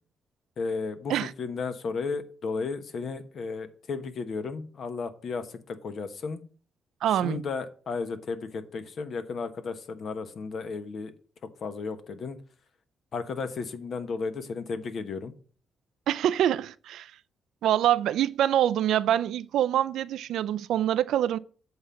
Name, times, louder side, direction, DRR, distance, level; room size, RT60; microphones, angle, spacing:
voice 1, 0.6-6.4 7.1-11.1 11.6-12.4 13.1-15.3, left 4 dB, 55° left, 1.0 m, -34 dB
voice 2, 7.0-7.4 16.1-17.1 17.6-21.4, right 11 dB, 80° right, 0.4 m, -25 dB
7.9 x 3.9 x 6.8 m
cardioid pair, 100°, 0 cm